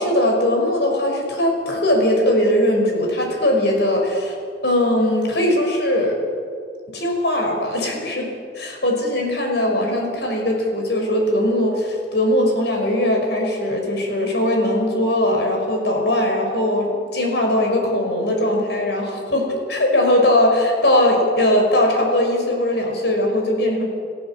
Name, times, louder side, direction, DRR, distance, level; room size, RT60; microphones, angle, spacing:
voice 1, 0.0-4.3 4.6-6.2 6.9-8.3 8.5-23.8, left 1 dB, 65° left, 1 dB, 5.7 m, -20 dB
29.5 x 15.0 x 7.5 m, 2.2 s
head